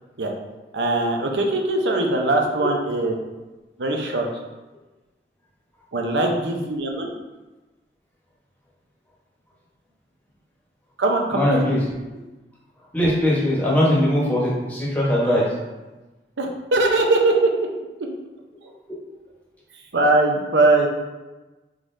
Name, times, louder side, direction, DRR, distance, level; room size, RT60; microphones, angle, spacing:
voice 1, 0.7-3.1 3.8-4.3 5.9-7.1 11.0-11.6 16.4-17.5 19.9-20.9, right 2 dB, 85° right, 1 dB, 0.7 m, -21 dB
voice 2, 11.3-11.8 12.9-15.5, equal, 10° left, -6 dB, 1.0 m, -20 dB
4.7 x 3.9 x 2.6 m, 1.1 s
head